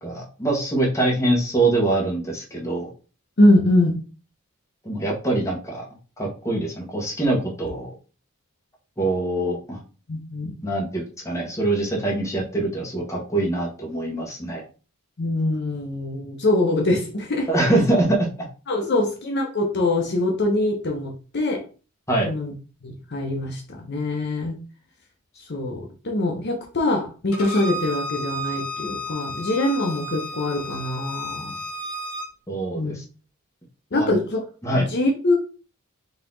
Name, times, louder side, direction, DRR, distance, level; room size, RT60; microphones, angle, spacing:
voice 1, 0.0-2.9 4.8-5.8 6.2-7.9 9.0-9.8 10.6-14.6 17.5-18.3 22.1-22.3 32.5-33.0 33.9-34.2 34.6-34.8, right 2 dB, 15° left, -2 dB, 1.2 m, -24 dB
voice 2, 3.4-3.9 10.1-10.5 15.2-17.5 18.7-21.6 22.3-22.5 22.8-24.5 25.4-31.5 32.7-32.9 33.9-34.4 34.7-35.3, left 1 dB, 50° left, 2 dB, 0.7 m, -23 dB
Bowed string instrument, 27.3-32.3, equal, 75° left, 1.5 m, -32 dB
4.0 x 2.8 x 3.8 m, 0.35 s
head